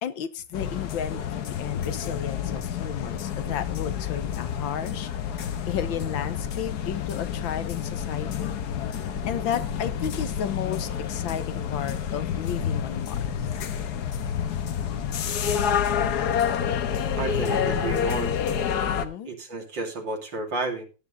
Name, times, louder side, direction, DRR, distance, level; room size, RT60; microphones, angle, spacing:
voice 1, 0.0-5.1 5.7-8.5 9.3-13.5 18.9-19.3, left 9 dB, 85° left, 1.8 m, -33 dB
sound 1, 0.5-19.1, left 8 dB, 60° left, 1.5 m, -28 dB
voice 2, 17.1-18.3 19.3-20.8, right 3 dB, 70° right, 3.4 m, -31 dB
16.5 x 9.6 x 2.6 m
omnidirectional pair, 2.1 m